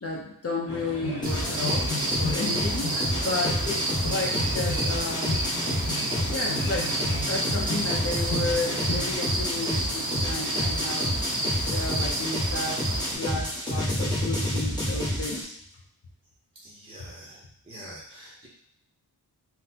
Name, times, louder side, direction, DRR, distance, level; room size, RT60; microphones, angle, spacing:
voice 1, 0.0-5.5 6.3-7.0 7.3-11.1 11.7-15.5, left 2 dB, 40° left, -1 dB, 0.6 m, -33 dB
sound 1, 0.7-9.1, left 1 dB, 60° left, 1.0 m, -35 dB
sound 2, 1.2-15.4, equal, 10° left, 1.0 m, -29 dB
sound 3, 1.2-13.1, right 1 dB, 50° right, 0.6 m, -31 dB
voice 2, 16.6-17.4 17.7-18.5, right 1 dB, 15° right, -5 dB, 0.7 m, -45 dB
3.9 x 2.0 x 2.7 m, 0.72 s
wide cardioid pair, 100°, 40 cm